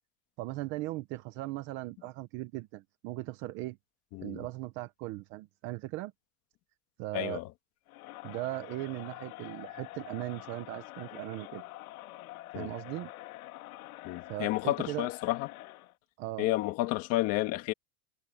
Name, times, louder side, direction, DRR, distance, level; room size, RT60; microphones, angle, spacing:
voice 1, 0.4-3.8 4.2-6.1 7.0-7.4 8.2-11.6 12.5-13.1 14.3-15.1 16.2-16.5, right 18 dB, 30° right, 0.6 m, -38 dB
voice 2, 4.1-4.4 7.1-7.4 12.5-12.7 14.0-15.5 16.4-17.7, left 17 dB, 35° left, 1.8 m, -31 dB
Crowd, 7.9-15.9, left 17 dB, 80° left, 2.6 m, -46 dB
supercardioid pair, 180°, 42 cm